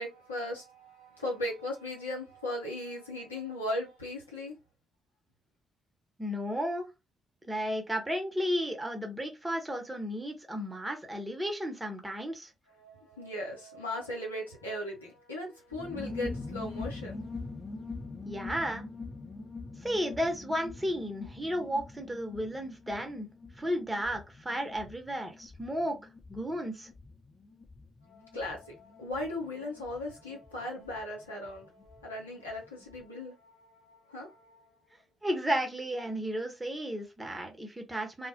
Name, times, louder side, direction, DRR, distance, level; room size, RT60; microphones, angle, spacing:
voice 1, 0.0-4.5 12.8-17.4 28.0-34.7, left 1 dB, 85° left, 0.7 m, -38 dB
voice 2, 6.2-6.9 7.4-12.5 18.2-18.8 19.8-23.3 23.6-26.0 26.3-26.9 35.2-38.3, equal, 15° right, 0.8 m, -33 dB
sound 1, 15.7-32.0 32.3-32.4 32.6-33.0, left 3 dB, 25° left, 0.8 m, -44 dB
2.1 x 2.1 x 2.7 m
figure-of-eight pair, 40°, 0 cm